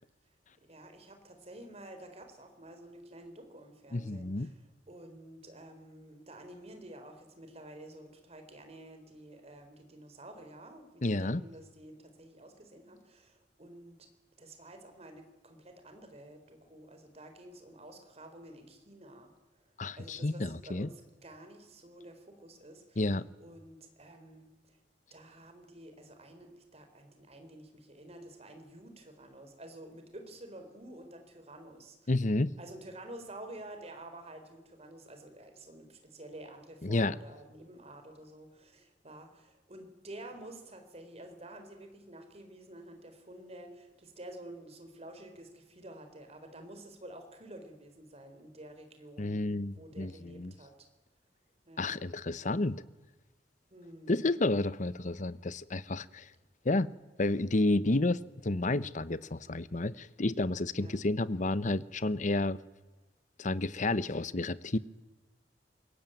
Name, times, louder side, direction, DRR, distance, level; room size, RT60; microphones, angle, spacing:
voice 1, 0.7-14.1 14.4-19.6 19.9-23.1 23.4-24.8 25.1-32.1 32.6-50.9 51.7-52.0 53.7-54.4 60.8-61.0, right 1 dB, 35° right, 4.3 m, -50 dB
voice 2, 3.9-4.5 11.0-11.4 19.8-20.9 23.0-23.3 32.1-32.5 36.8-37.1 49.2-50.5 51.8-52.8 54.1-56.3 56.6-56.9 57.2-62.6 63.4-64.8, left 2 dB, 45° left, 0.9 m, -30 dB
25.0 x 22.0 x 9.2 m
head